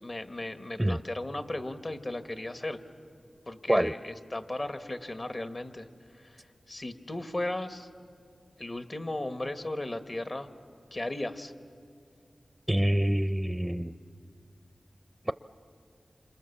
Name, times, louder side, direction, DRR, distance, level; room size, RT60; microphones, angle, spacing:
voice 1, 0.0-2.8 3.5-5.9 6.1-6.4 6.7-7.9 8.6-10.5 10.9-11.5, left 1 dB, 45° left, 8 dB, 1.5 m, -36 dB
voice 2, 12.7-14.0 15.3-15.4, right 1 dB, 10° right, 12 dB, 0.6 m, -26 dB
28.5 x 26.5 x 7.2 m, 2.4 s
cardioid pair, 50°, 0 cm